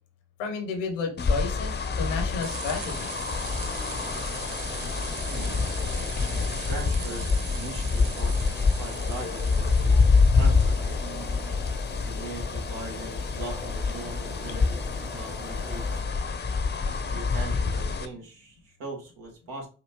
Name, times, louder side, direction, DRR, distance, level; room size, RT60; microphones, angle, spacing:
voice 1, 0.4-3.2, left 4 dB, 85° left, 3 dB, 1.0 m, -32 dB
sound 1, 1.2-18.1, left 4 dB, 30° left, 0.7 m, -26 dB
sound 2, 2.4-11.4, right 12 dB, 50° right, 0.4 m, -42 dB
sound 3, 2.8-16.0, right 1 dB, 5° right, 0.8 m, -44 dB
voice 2, 5.3-5.7 6.3-10.0 10.3-11.4 12.0-14.8 15.1-16.0 16.9-19.7, right 2 dB, 70° right, -1 dB, 1.7 m, -40 dB
5.0 x 2.6 x 3.0 m, 0.36 s
hypercardioid pair, 45°, 36 cm